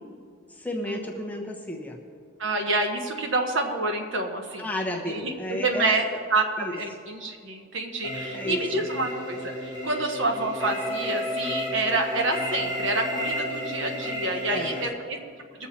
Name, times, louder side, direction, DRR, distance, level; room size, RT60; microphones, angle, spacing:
voice 1, 0.5-2.0 4.6-5.9 6.6-6.8 8.3-8.6 14.5-14.9, left 1 dB, 5° left, -1 dB, 1.0 m, -32 dB
voice 2, 2.4-4.7 5.1-6.0 6.3-15.2, right 2 dB, 65° right, 3 dB, 1.3 m, -28 dB
sound 1, 8.0-14.9, left 1 dB, 20° right, 1.5 m, -32 dB
20.5 x 7.3 x 4.3 m, 2.1 s
head